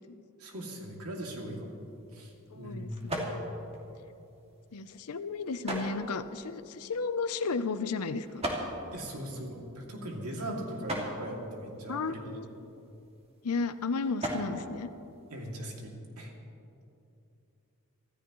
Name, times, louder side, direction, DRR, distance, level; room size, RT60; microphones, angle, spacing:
voice 1, 0.4-1.7 2.1-2.9 8.9-12.2 15.3-16.3, right 1 dB, 85° right, -1 dB, 2.6 m, -40 dB
sound 1, 1.5-15.8, right 1 dB, 30° right, 2.2 m, -42 dB
voice 2, 2.5-3.4 4.7-8.4 10.6-10.7 11.9-12.4 13.4-14.9, left 4 dB, 85° left, 12 dB, 0.7 m, -34 dB
25.5 x 13.5 x 3.1 m, 2.7 s
head